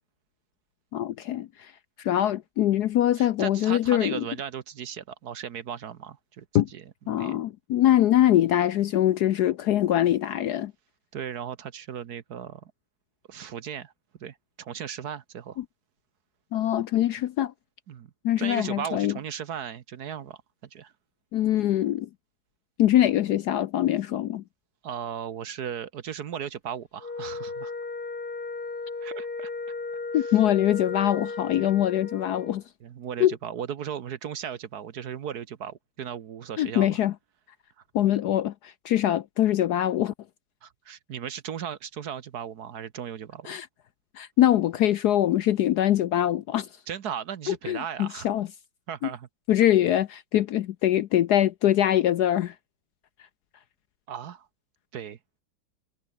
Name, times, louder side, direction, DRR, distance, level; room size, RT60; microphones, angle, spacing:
voice 1, 0.9-1.7 2.0-4.2 6.5-6.7 7.1-10.7 16.5-17.5 18.2-19.1 21.3-22.1 22.8-24.4 30.1-32.6 33.2-33.3 36.6-37.1 37.9-40.1 43.5-43.7 44.2-46.7 47.5-48.5 49.5-52.5, left 12 dB, 65° left, 1.0 m, -23 dB
voice 2, 3.1-7.4 11.1-12.7 13.3-13.9 14.2-15.6 17.9-18.1 18.4-20.4 20.7-20.9 24.8-27.7 29.0-29.5 30.1-30.4 31.6-31.7 32.8-37.0 40.6-43.6 46.9-48.3 48.9-49.3 54.1-54.5 54.9-55.2, right 8 dB, 55° right, 1.4 m, -36 dB
Wind instrument woodwind instrument, 27.0-32.6, left 3 dB, 50° left, 4.1 m, -35 dB
omnidirectional pair, 2.2 m